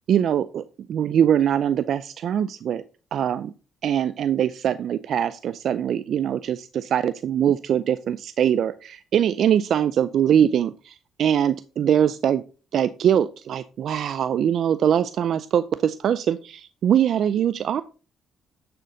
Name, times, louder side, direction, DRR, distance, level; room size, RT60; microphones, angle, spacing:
voice 1, 0.1-0.6 0.9-2.8 3.1-3.5 3.8-12.4 12.7-17.8, right 9 dB, 65° right, 14 dB, 0.4 m, -22 dB
10.0 x 6.8 x 3.9 m, 0.35 s
cardioid pair, 90°, 0 cm